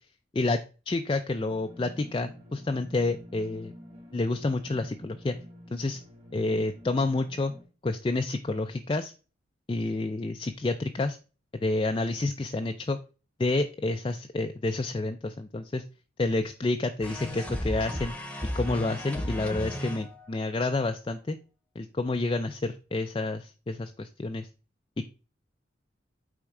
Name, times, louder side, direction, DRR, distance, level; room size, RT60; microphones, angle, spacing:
voice 1, 0.3-3.7 4.1-5.4 5.7-6.0 6.3-7.5 7.8-9.1 9.7-11.2 11.6-13.0 13.4-15.8 16.2-18.1 18.5-21.4 21.8-24.5, left 2 dB, 25° left, 6 dB, 0.4 m, -29 dB
sound 1, 1.5-7.6, equal, 30° right, 1.8 m, -48 dB
sound 2, 17.0-20.4, equal, 5° left, 0.9 m, -34 dB
8.6 x 3.6 x 4.8 m, 0.35 s
head